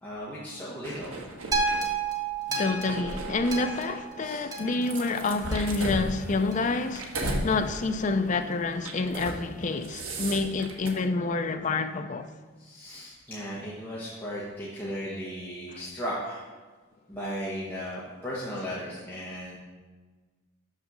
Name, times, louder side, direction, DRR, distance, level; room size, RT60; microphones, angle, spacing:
voice 1, 0.0-1.1 4.2-4.5 12.6-16.5 17.1-19.6, equal, 10° left, 1.1 m, -36 dB
sound 1, 0.8-1.8 2.4-4.0 4.6-7.5 7.9-8.1 8.8-9.4 9.7-10.9, right 1 dB, 80° right, 1.2 m, -35 dB
sound 2, 1.5-5.8 6.5-6.6, right 4 dB, 15° right, 0.9 m, -32 dB
voice 2, 2.6-12.3, left 3 dB, 35° left, 0.4 m, -28 dB
6.5 x 6.3 x 6.0 m
head